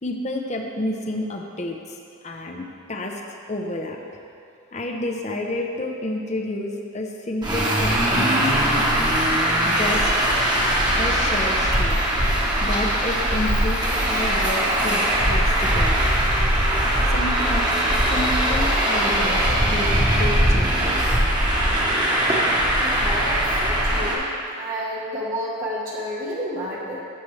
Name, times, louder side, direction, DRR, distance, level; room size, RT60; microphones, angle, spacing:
voice 1, 0.0-2.0 2.2-3.2 3.5-4.0 4.7-8.8 9.6-10.1 10.9-12.0 12.6-16.0 17.1-17.7 18.1-21.2, left 1 dB, 35° left, 2 dB, 0.7 m, -30 dB
Traffic noise roadway noise, 7.4-24.1, right 1 dB, 20° right, 1.2 m, -20 dB
voice 2, 22.8-24.3 24.5-27.0, equal, 40° right, -6 dB, 1.2 m, -30 dB
14.0 x 7.5 x 3.3 m, 2.7 s
head